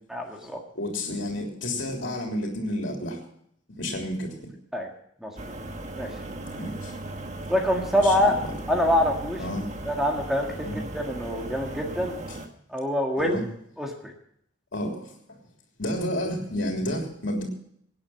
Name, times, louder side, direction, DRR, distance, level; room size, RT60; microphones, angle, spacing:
voice 1, 0.1-0.6 4.7-4.9 5.2-5.3 6.0-6.1 7.5-8.4 8.7-9.4 9.9-12.1 12.7-13.4 13.8-14.1, left 1 dB, ahead, 1 dB, 1.8 m, -25 dB
voice 2, 0.7-3.2 3.8-4.3 6.6-6.9 8.0-8.1 9.4-9.7 10.6-10.8 13.2-13.4 14.7-15.4 15.8-17.4, left 1 dB, 65° left, 0 dB, 3.4 m, -30 dB
sound 1, 5.4-12.5, right 1 dB, 35° right, 1.5 m, -37 dB
18.0 x 9.8 x 5.8 m, 0.68 s
head